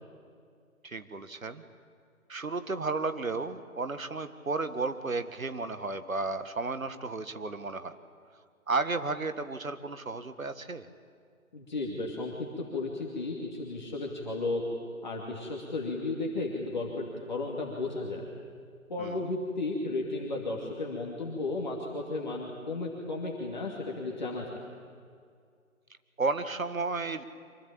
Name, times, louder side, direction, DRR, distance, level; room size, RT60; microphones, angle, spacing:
voice 1, 0.8-1.6 2.3-8.0 8.7-10.9 19.0-19.4 26.2-27.2, right 3 dB, 70° right, 11 dB, 1.8 m, -33 dB
voice 2, 11.5-14.6 15.0-18.2 18.9-24.6, left 2 dB, 30° left, -1 dB, 2.5 m, -34 dB
25.0 x 22.5 x 8.8 m, 2.2 s
figure-of-eight pair, 160°, 42 cm